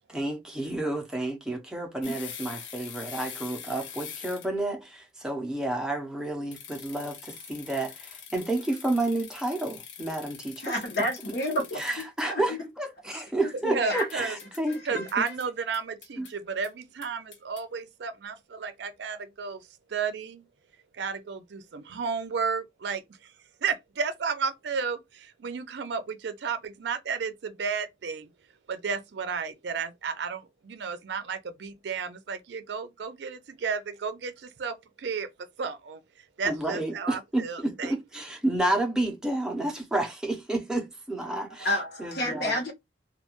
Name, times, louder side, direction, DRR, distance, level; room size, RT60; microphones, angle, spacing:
voice 1, 0.1-10.8 11.7-15.1 16.2-16.3 36.4-42.6, right 1 dB, 5° right, 0.5 m, -30 dB
sound 1, 2.0-4.6 6.5-12.2 14.0-14.8 15.1-15.5 15.7-16.3 16.6-16.7 17.0-17.6, left 8 dB, 85° left, 0.5 m, -44 dB
voice 2, 10.6-11.8 12.2-12.6 13.4-14.1 14.9-15.0 41.3-42.7, left 1 dB, 60° left, 0.9 m, -30 dB
voice 3, 13.7-14.4 14.8-20.5 20.9-23.3 23.6-28.3 28.7-37.9, right 5 dB, 70° right, 0.4 m, -33 dB
2.3 x 2.2 x 2.9 m
head